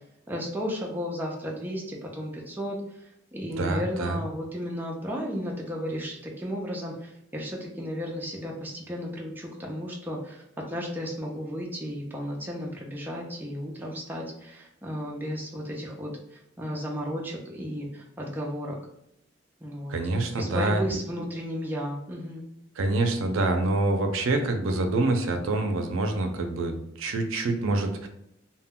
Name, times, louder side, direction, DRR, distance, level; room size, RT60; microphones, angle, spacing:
voice 1, 0.3-2.8 3.3-16.1 16.6-18.8 19.6-20.0 20.4-22.5, equal, 10° right, -2 dB, 0.4 m, -34 dB
voice 2, 3.6-4.2 19.9-21.0 22.8-28.1, right 2 dB, 90° right, 5 dB, 0.4 m, -26 dB
2.1 x 2.1 x 3.5 m, 0.79 s
head